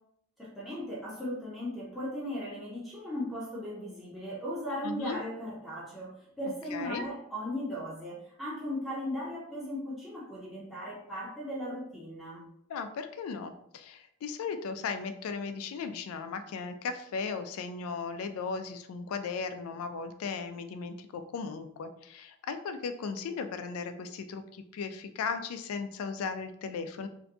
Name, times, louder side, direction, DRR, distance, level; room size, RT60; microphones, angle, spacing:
voice 1, 0.4-12.4, equal, ahead, -8 dB, 0.6 m, -37 dB
voice 2, 4.8-5.2 6.4-7.0 12.7-27.1, left 5 dB, 80° left, 9 dB, 0.3 m, -37 dB
2.6 x 2.1 x 2.6 m, 0.71 s
head